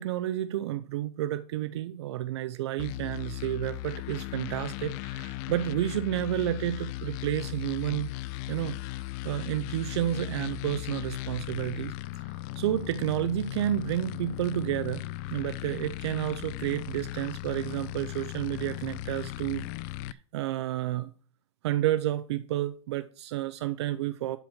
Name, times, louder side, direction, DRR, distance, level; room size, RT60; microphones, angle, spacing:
voice 1, 0.0-8.1 8.5-8.8 9.2-11.9 12.3-15.0 15.3-19.6 20.3-21.1 21.6-24.4, right 13 dB, 65° right, 0.7 m, -30 dB
sound 1, 2.8-20.1, left 16 dB, 40° left, 0.4 m, -37 dB
12.0 x 4.3 x 7.4 m
supercardioid pair, 150°, 15 cm